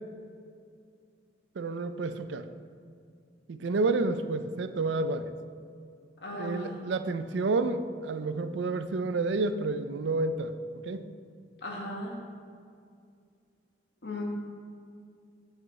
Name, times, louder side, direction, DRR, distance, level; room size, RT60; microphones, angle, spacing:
voice 1, 1.6-2.4 3.5-5.3 6.3-10.5 10.9-11.0, right 3 dB, 90° right, 11 dB, 0.4 m, -30 dB
voice 2, 6.2-6.7 11.6-12.2 14.0-14.2, left 1 dB, 70° left, -2 dB, 1.5 m, -37 dB
8.1 x 7.7 x 3.2 m, 2.3 s
head